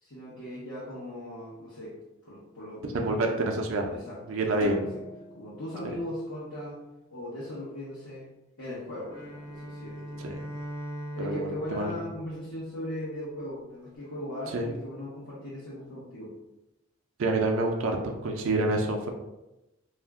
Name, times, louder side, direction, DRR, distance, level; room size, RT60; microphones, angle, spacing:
voice 1, 0.0-2.0 2.2-3.5 3.9-4.4 4.6-5.0 5.3-6.8 7.1-8.3 8.6-10.2 11.1-16.3, left 1 dB, 80° left, -9 dB, 0.8 m, -39 dB
voice 2, 2.8-3.9 4.3-4.8 10.2-10.3 11.2-11.9 14.5-14.7 17.2-19.1, right 2 dB, 75° right, 2 dB, 0.4 m, -27 dB
sound 1, 4.6-7.2, left 1 dB, 40° left, 0.5 m, -43 dB
Bowed string instrument, 9.0-13.3, equal, 5° right, 1.0 m, -41 dB
2.4 x 2.1 x 3.5 m, 0.94 s
head